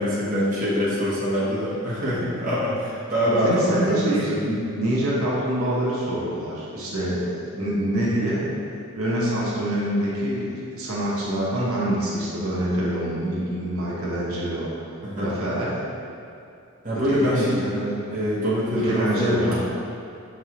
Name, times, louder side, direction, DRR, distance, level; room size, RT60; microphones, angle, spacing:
voice 1, 0.0-4.5 15.0-15.3 16.8-17.6 18.1-19.6, equal, 35° right, -9 dB, 0.9 m, -24 dB
voice 2, 3.2-8.5 8.9-14.7 15.2-15.8 17.1-18.0 18.7-19.6, right 1 dB, 75° right, -7 dB, 1.0 m, -26 dB
5.8 x 3.1 x 2.9 m, 2.6 s
head